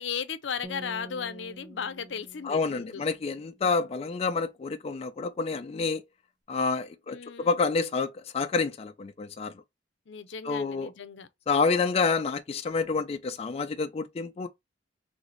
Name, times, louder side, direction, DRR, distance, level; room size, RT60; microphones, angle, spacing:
voice 1, 0.0-3.0 7.1-7.5 10.1-11.3, left 7 dB, 75° left, 0.6 m, -36 dB
sound 1, 0.6-3.8, right 1 dB, 5° right, 0.8 m, -47 dB
voice 2, 2.4-6.0 6.5-9.5 10.4-10.9 11.5-14.5, left 4 dB, 35° left, 0.3 m, -28 dB
3.5 x 3.3 x 3.9 m
head